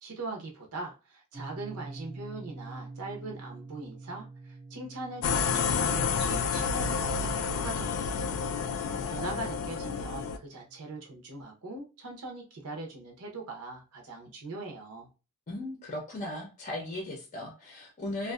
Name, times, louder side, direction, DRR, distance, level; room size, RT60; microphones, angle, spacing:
voice 1, 0.0-8.3 9.1-15.1, right 2 dB, 80° right, 0.7 m, -41 dB
sound 1, 1.3-11.5, right 3 dB, 20° right, 0.3 m, -48 dB
sound 2, 5.2-10.4, left 6 dB, 90° left, 0.3 m, -29 dB
voice 2, 15.5-18.3, left 1 dB, 35° left, 0.6 m, -37 dB
2.5 x 2.3 x 2.3 m
head